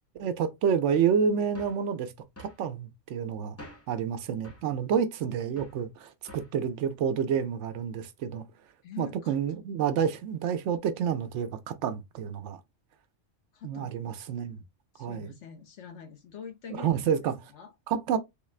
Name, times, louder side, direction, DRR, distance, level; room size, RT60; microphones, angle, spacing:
voice 1, 0.2-2.1 2.4-3.6 3.9-8.4 9.0-12.6 13.6-14.6 15.0-15.3 16.8-17.3 17.9-18.2, right 7 dB, 80° right, 0.9 m, -29 dB
sound 1, 1.5-1.9 2.4-2.6 3.6-4.0 4.4-4.7 5.6-5.8 6.3-6.6, left 1 dB, 15° left, 0.6 m, -48 dB
voice 2, 8.8-9.4 13.5-13.9 14.9-17.7, left 7 dB, 75° left, 1.2 m, -45 dB
3.6 x 2.4 x 3.1 m
omnidirectional pair, 1.2 m